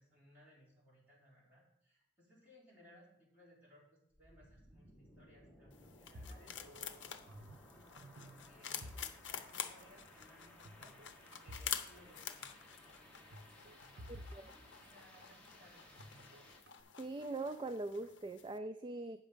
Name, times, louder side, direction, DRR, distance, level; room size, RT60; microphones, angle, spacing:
voice 1, 0.0-10.9 11.2-13.4 14.4-16.4, equal, 10° right, -8 dB, 4.0 m, -65 dB
sound 1, 4.1-16.6, left 1 dB, 5° left, 1.4 m, -61 dB
sound 2, 5.7-18.6, left 8 dB, 70° left, 0.7 m, -48 dB
sound 3, 6.1-7.7 8.0-9.6 9.8-10.0 10.6-11.8 12.0-12.1 13.3-15.4 16.0-16.8, equal, 85° right, 0.8 m, -53 dB
voice 2, 14.1-14.5 17.0-19.2, right 2 dB, 25° right, 9 dB, 0.3 m, -42 dB
9.1 x 6.1 x 5.1 m, 0.75 s
head